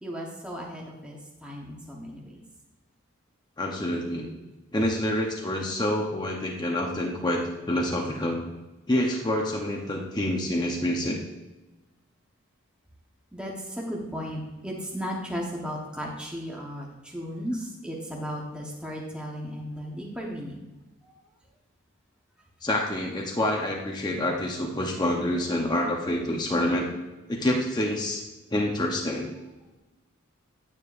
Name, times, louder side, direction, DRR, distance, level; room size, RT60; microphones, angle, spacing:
voice 1, 0.0-2.4 13.3-20.6 21.0-21.1, equal, 5° right, -2 dB, 1.1 m, -35 dB
voice 2, 3.6-4.3 4.7-8.4 8.9-11.2 22.6-26.9 27.3-28.2 28.5-29.3, left 1 dB, 20° left, -1 dB, 0.8 m, -27 dB
9.5 x 8.9 x 2.5 m, 1.1 s
head